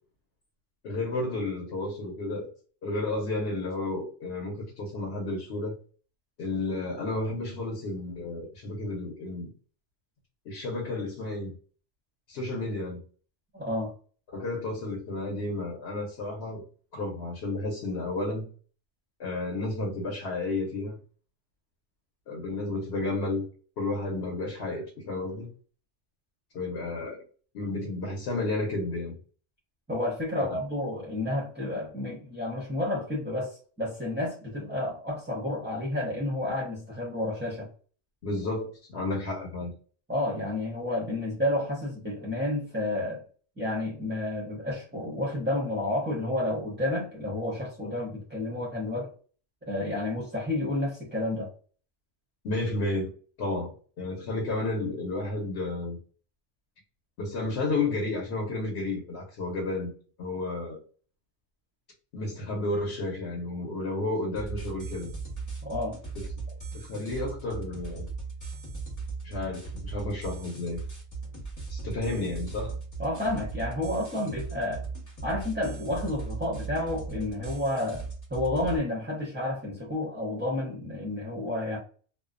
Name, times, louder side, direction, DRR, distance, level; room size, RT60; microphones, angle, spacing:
voice 1, 0.8-2.5 2.8-5.7 6.4-9.5 10.4-11.5 12.3-13.0 14.3-16.6 16.9-18.5 19.2-20.9 22.3-23.5 23.8-25.5 26.5-27.2 27.5-29.2 30.3-30.5 38.2-39.7 52.4-53.1 53.4-56.0 57.2-59.9 60.2-60.8 62.1-65.1 66.2-66.3 66.7-68.1 69.2-70.8 71.7-72.8, left 2 dB, 65° left, 0.9 m, -32 dB
voice 2, 13.5-13.9 29.9-37.7 40.1-43.2 43.6-49.1 49.7-51.5 65.6-66.0 73.0-74.8 75.2-81.8, left 1 dB, 15° right, 0.4 m, -30 dB
sound 1, 64.3-78.8, right 4 dB, 15° left, 0.8 m, -38 dB
2.4 x 2.1 x 2.4 m
omnidirectional pair, 1.2 m